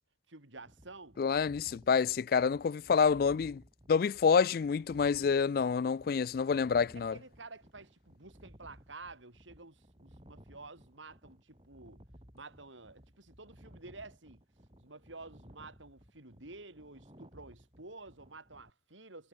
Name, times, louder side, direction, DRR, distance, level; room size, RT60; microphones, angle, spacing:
voice 1, 0.3-1.2 1.7-1.8 6.9-12.0 12.3-14.4 14.8-19.3, right 3 dB, 85° right, 4.7 m, -51 dB
sound 1, 0.6-18.7, equal, 30° right, 7.5 m, -58 dB
voice 2, 1.2-3.6 3.9-7.2, left 6 dB, 50° left, 0.3 m, -28 dB
head